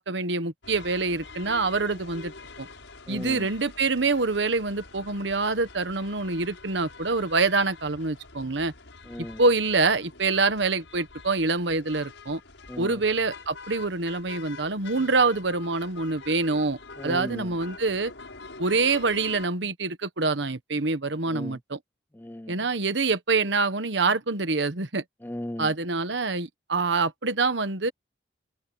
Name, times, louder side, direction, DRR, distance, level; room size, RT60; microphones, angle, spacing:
voice 1, 0.0-2.3 2.6-2.7 3.1-8.7 9.4-12.4 12.8-16.8 17.0-18.1 18.6-21.8 22.5-25.0 25.6-27.9, right 3 dB, 75° right, 1.3 m, -25 dB
sound 1, 0.6-19.5, left 3 dB, 90° left, 7.1 m, -46 dB
voice 2, 3.1-3.5 9.1-9.4 12.7-13.0 17.0-17.5 21.3-21.6 22.1-22.6 25.2-25.7, left 1 dB, 10° left, 0.6 m, -36 dB
head